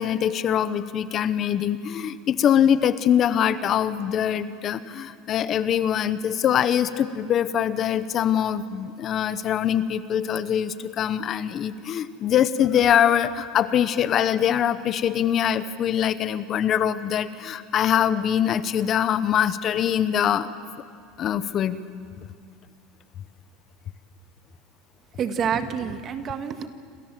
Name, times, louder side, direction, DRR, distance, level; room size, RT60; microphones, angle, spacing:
voice 1, 0.0-20.5 21.2-21.8, left 9 dB, 40° left, 13 dB, 1.0 m, -23 dB
voice 2, 25.2-26.7, right 7 dB, 35° right, 8 dB, 1.7 m, -27 dB
28.0 x 27.0 x 7.6 m, 2.2 s
supercardioid pair, 130°, 0 cm